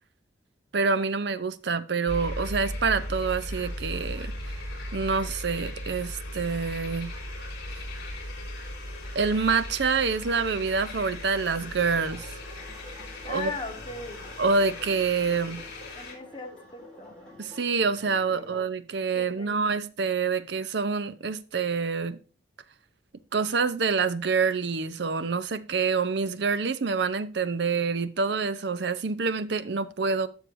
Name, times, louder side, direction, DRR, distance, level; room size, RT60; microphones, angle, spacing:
voice 1, 0.7-4.3 4.9-7.1 9.1-12.3 13.3-13.5 14.4-15.6 17.4-22.2 23.3-30.3, right 5 dB, 65° right, 0.6 m, -27 dB
sound 1, 2.1-16.1, left 1 dB, 60° left, 3.6 m, -37 dB
sound 2, 11.7-18.6, left 1 dB, 5° left, 4.1 m, -49 dB
voice 2, 13.3-14.3 15.9-17.2 18.3-18.7 19.1-19.7, left 2 dB, 25° left, 1.2 m, -39 dB
12.5 x 6.4 x 2.6 m
head